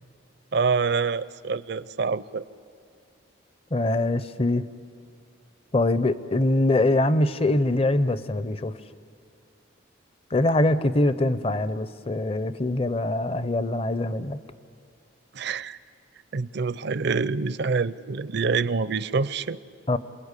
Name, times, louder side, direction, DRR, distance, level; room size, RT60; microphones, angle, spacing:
voice 1, 0.5-2.4 15.3-15.8 16.3-19.6, right 4 dB, 55° right, 17 dB, 0.5 m, -26 dB
voice 2, 3.7-4.7 5.7-8.8 10.3-14.4 19.9-20.0, left 2 dB, 30° left, 14 dB, 0.6 m, -23 dB
28.5 x 21.0 x 8.3 m, 2.3 s
head